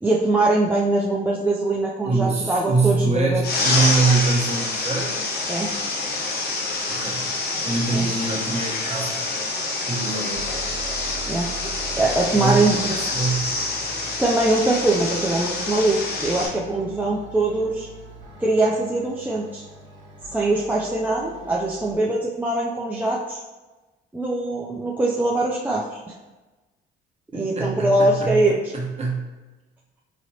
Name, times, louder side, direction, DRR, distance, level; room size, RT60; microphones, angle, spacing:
voice 1, 0.0-3.4 5.5-5.7 7.9-8.1 11.3-11.5 12.0-13.0 14.2-17.9 18.4-19.6 20.3-23.4 24.1-26.1 27.3-28.6, right 2 dB, 10° right, -4 dB, 0.4 m, -22 dB
voice 2, 2.0-5.2 6.9-7.4 7.6-9.2 9.9-10.6 12.3-13.5 27.3-29.2, right 4 dB, 35° right, -2 dB, 1.1 m, -24 dB
sound 1, 3.4-16.5, left 3 dB, 55° left, 0.9 m, -26 dB
sound 2, 10.3-22.0, right 3 dB, 80° right, 1.4 m, -42 dB
4.1 x 2.9 x 2.8 m, 1.2 s
cardioid pair, 95°, 19 cm